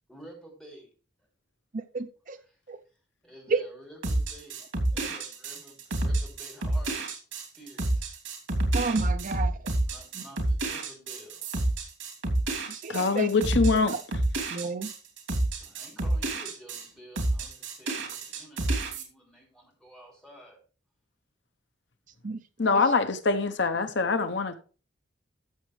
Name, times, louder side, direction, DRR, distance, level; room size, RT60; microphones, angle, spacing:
voice 1, 0.1-0.9 2.4-2.6 2.9-4.6 4.9-8.2 9.8-11.7 15.6-20.6, equal, 5° left, 5.5 m, -51 dB
voice 2, 1.7-2.4 2.7-2.8 3.5-3.6 5.0-5.1 8.7-9.6 12.7-13.3 14.5-14.9 22.2-22.4, right 4 dB, 45° right, 0.6 m, -31 dB
sound 1, 4.0-16.9 17.2-19.0, right 2 dB, 85° right, 3.0 m, -29 dB
voice 3, 12.9-13.9 22.6-24.5, left 4 dB, 65° left, 0.9 m, -24 dB
13.5 x 7.2 x 3.2 m
head